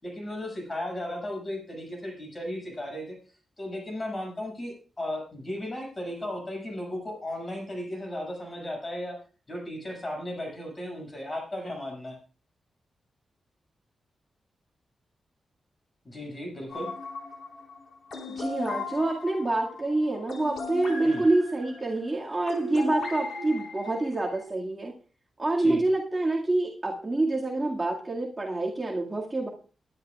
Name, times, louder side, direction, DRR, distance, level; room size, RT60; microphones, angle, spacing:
voice 1, 0.0-3.2 3.6-9.2 9.5-12.2 16.0-16.9 21.0-21.2 25.6-25.8, left 1 dB, 25° left, 1 dB, 6.6 m, -35 dB
sound 1, 16.7-24.4, left 3 dB, 70° left, 4.7 m, -37 dB
voice 2, 18.3-24.9 25.4-29.5, right 2 dB, 20° right, -3 dB, 2.1 m, -27 dB
22.0 x 11.0 x 2.4 m, 0.36 s
wide cardioid pair, 105°, 0 cm